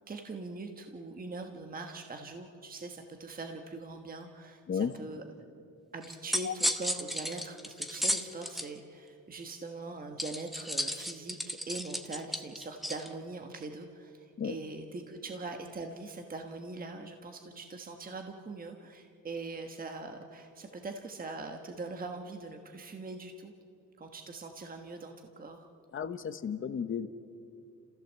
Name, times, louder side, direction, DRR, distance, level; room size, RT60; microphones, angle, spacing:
voice 1, 0.0-5.2 5.9-23.5 24.0-25.7, right 3 dB, 30° right, 4 dB, 1.4 m, -42 dB
sound 1, 6.0-8.7 10.2-13.1, equal, ahead, 1.0 m, -34 dB
voice 2, 25.9-27.1, left 7 dB, 40° left, 11 dB, 1.1 m, -33 dB
30.0 x 15.5 x 7.5 m, 2.5 s
cardioid pair, 130°, 31 cm